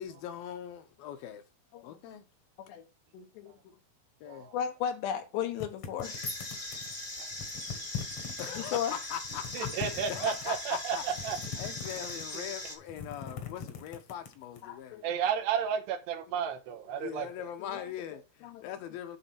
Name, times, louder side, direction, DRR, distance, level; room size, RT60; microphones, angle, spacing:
voice 1, 0.0-1.4 1.8-2.2 4.2-4.5 8.4-15.0 17.0-19.2, left 10 dB, 75° left, 2.4 m, -41 dB
voice 2, 3.1-3.5 4.5-6.2 8.6-8.9 14.6-15.0 17.6-17.9 18.4-18.7, left 9 dB, 90° left, 3.5 m, -35 dB
voice 3, 4.2-4.5 7.2-7.3 9.5-11.4 15.0-17.5, right 8 dB, 85° right, 3.2 m, -32 dB
sound 1, 5.6-6.9 7.3-8.8 9.2-10.6 11.1-12.5 12.8-14.6, left 7 dB, 60° left, 1.7 m, -41 dB
sound 2, 6.0-12.7, left 2 dB, 30° left, 0.9 m, -40 dB
10.0 x 3.9 x 5.8 m
omnidirectional pair, 4.8 m